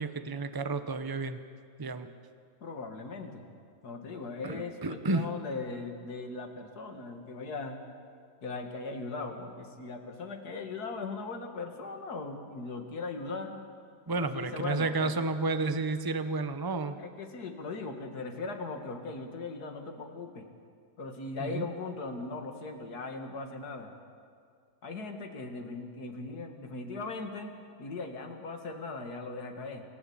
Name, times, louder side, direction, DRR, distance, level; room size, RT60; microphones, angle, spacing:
voice 1, 0.0-1.4 1.8-2.1 4.4-5.3 14.1-17.0 21.4-21.7, right 3 dB, 25° right, 10 dB, 0.5 m, -31 dB
voice 2, 2.6-3.5 3.8-7.8 8.4-13.6 14.2-15.1 17.0-20.4 21.0-23.9 24.8-29.8, left 3 dB, 55° left, 4 dB, 2.5 m, -39 dB
28.5 x 16.5 x 8.7 m, 2.2 s
omnidirectional pair, 2.1 m